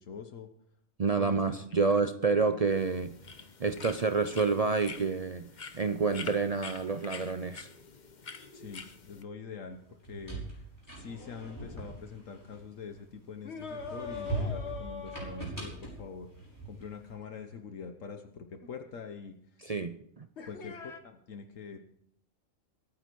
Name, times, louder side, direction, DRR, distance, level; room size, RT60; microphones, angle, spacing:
voice 1, 0.1-0.5 1.2-1.6 8.5-9.8 10.1-10.6 10.9-16.3 16.6-19.4 20.4-21.8, left 5 dB, 70° left, 1.3 m, -44 dB
voice 2, 1.0-3.2 3.6-7.7 19.6-20.3, right 4 dB, 50° right, 0.4 m, -29 dB
sound 1, 2.7-9.2, left 5 dB, 40° left, 0.9 m, -47 dB
sound 2, 9.9-13.1 13.6-17.0, right 2 dB, 15° left, 5.7 m, -40 dB
sound 3, 13.4-16.0 18.6-18.7 20.4-21.0, left 5 dB, 55° left, 1.5 m, -42 dB
22.5 x 9.5 x 4.6 m
omnidirectional pair, 1.4 m